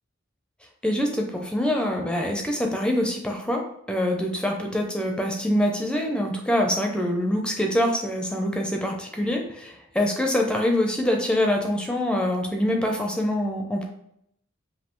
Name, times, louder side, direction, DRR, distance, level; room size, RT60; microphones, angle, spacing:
voice 1, 0.8-13.9, left 1 dB, 5° left, 2 dB, 0.4 m, -25 dB
5.3 x 2.7 x 3.0 m, 0.74 s
head